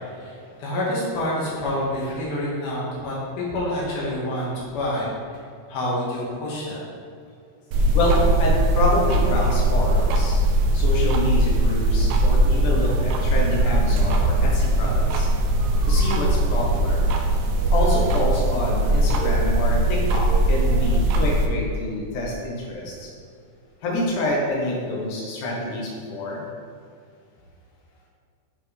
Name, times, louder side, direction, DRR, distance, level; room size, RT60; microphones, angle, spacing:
voice 1, 0.2-4.5 4.7-5.1 5.7-6.8, left 1 dB, 85° left, -6 dB, 3.8 m, -27 dB
sound 1, 7.7-21.5, right 1 dB, 75° right, 1.9 m, -20 dB
voice 2, 7.9-10.4 10.7-15.3 15.9-17.1 17.7-23.1 23.8-26.5, left 1 dB, 65° left, -3 dB, 2.8 m, -27 dB
9.8 x 5.8 x 3.6 m, 2.2 s
omnidirectional pair, 4.1 m